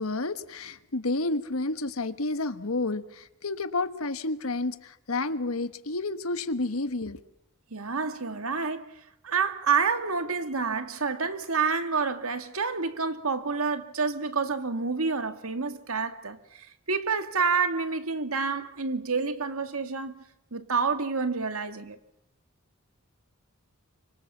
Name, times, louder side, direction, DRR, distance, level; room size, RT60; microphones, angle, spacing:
voice 1, 0.0-7.2, left 2 dB, 85° left, 1.4 m, -30 dB
voice 2, 7.7-20.2 20.5-22.0, right 5 dB, 85° right, 2.0 m, -28 dB
25.5 x 25.0 x 7.3 m
head